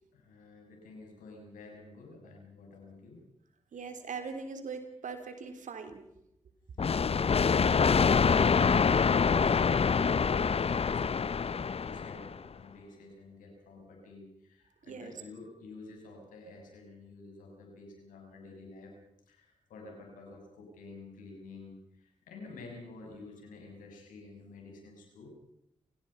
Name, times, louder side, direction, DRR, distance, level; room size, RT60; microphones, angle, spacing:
voice 1, 0.1-3.2 7.3-19.0 19.3-25.3, left 3 dB, 90° left, 2 dB, 6.5 m, -50 dB
voice 2, 3.7-6.0 14.9-15.1, right 5 dB, 75° right, 8 dB, 3.5 m, -41 dB
sound 1, 6.8-12.3, left 6 dB, 50° left, 0.7 m, -25 dB
28.5 x 17.5 x 5.6 m, 0.81 s
supercardioid pair, 40°, 13 cm